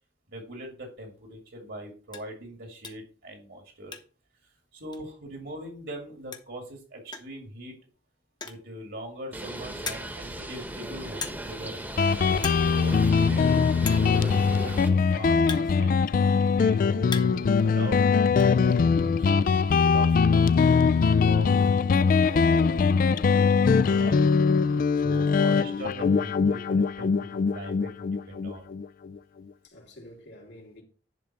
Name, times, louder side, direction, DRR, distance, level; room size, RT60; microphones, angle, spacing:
voice 1, 0.3-4.0 4.7-7.8 8.4-11.8 12.7-20.6 20.9-21.7 22.2-24.2 25.0-28.7, equal, 70° right, 2.2 m, -41 dB
sound 1, 1.1-1.3 1.7-1.8 2.1-2.3 2.8-3.1 3.4-4.3 4.5-4.6 4.9-5.0 6.0-6.1 6.3-6.6 7.1-7.4 8.2-8.7 9.3-9.4 9.8-10.3 11.2-11.6 11.9-12.1 12.3-12.7 13.0-13.1 13.8-14.2 15.0-16.3 16.7-17.5 17.8-18.5, left 5 dB, 25° left, 0.9 m, -38 dB
Bird, 9.3-14.9, right 1 dB, 10° right, 1.0 m, -37 dB
Guitar, 12.0-29.2, left 5 dB, 50° left, 0.3 m, -22 dB
voice 2, 29.6-30.8, left 1 dB, 75° left, 2.9 m, -49 dB
10.5 x 3.8 x 5.9 m
head